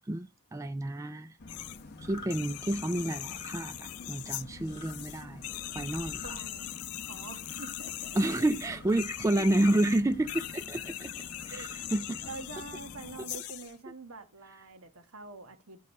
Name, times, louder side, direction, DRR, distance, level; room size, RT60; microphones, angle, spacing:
voice 1, 0.0-1.4 2.0-5.5 5.7-6.4 8.2-12.2, right 1 dB, 15° right, 0.4 m, -30 dB
sound 1, 1.4-13.3, left 2 dB, 50° left, 1.0 m, -48 dB
sound 2, 1.5-1.8 2.2-13.7, left 14 dB, 80° left, 0.5 m, -41 dB
sound 3, 2.0-2.3 3.2-3.6 4.7-5.0 6.0-6.4 7.4-7.8 8.8-9.1 10.1-10.5 11.3-11.8, left 1 dB, 20° left, 3.0 m, -48 dB
voice 2, 6.2-6.7 7.1-8.2 9.4-9.6 11.5-11.7 12.2-15.8, right 3 dB, 70° right, 1.4 m, -46 dB
11.0 x 3.9 x 5.4 m
head